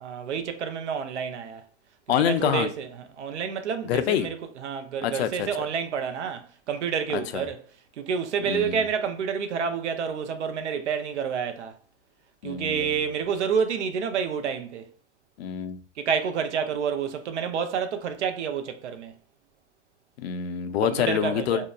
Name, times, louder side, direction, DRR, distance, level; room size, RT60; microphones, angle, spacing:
voice 1, 0.0-1.6 2.2-7.6 8.0-11.7 12.4-14.9 16.0-19.1 20.8-21.7, right 7 dB, 90° right, 0.5 m, -29 dB
voice 2, 2.1-2.7 3.8-4.3 5.0-5.7 7.1-7.4 8.5-8.9 12.4-13.0 15.4-15.8 20.2-21.7, left 9 dB, 65° left, 0.5 m, -26 dB
2.7 x 2.1 x 2.3 m
hypercardioid pair, 120°, 34 cm